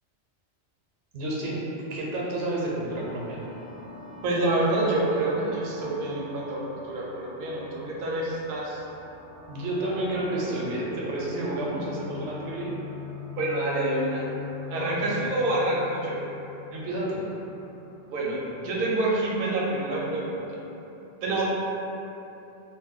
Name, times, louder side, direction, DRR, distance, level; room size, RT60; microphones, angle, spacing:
voice 1, 1.1-1.6 1.9-3.5 9.5-12.7 15.0-15.3 16.7-17.2 21.2-21.3, right 1 dB, 85° right, -4 dB, 0.9 m, -30 dB
sound 1, 2.9-20.0, left 6 dB, 55° left, 0.8 m, -44 dB
voice 2, 4.2-8.8 13.4-14.3 14.7-16.2 18.1-20.4 21.2-21.4, right 2 dB, 60° right, -5 dB, 0.7 m, -27 dB
2.3 x 2.1 x 3.5 m, 2.8 s
omnidirectional pair, 1.2 m